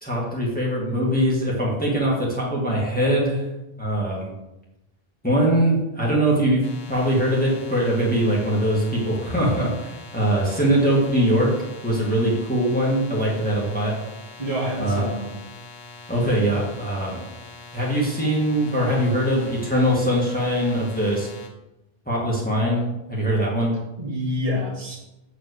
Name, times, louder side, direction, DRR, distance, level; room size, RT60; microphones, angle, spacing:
voice 1, 0.0-3.5 3.8-4.3 5.2-6.6 6.9-11.5 11.8-13.9 14.8-15.0 16.1-17.2 17.7-21.3 22.1-23.7, right 1 dB, 10° left, -4 dB, 2.0 m, -22 dB
sound 1, 6.6-21.5, left 3 dB, 75° left, 1.5 m, -43 dB
voice 2, 14.4-15.4 24.0-25.0, left 1 dB, 35° right, -3 dB, 2.0 m, -27 dB
8.0 x 4.9 x 6.7 m, 0.94 s
omnidirectional pair, 1.0 m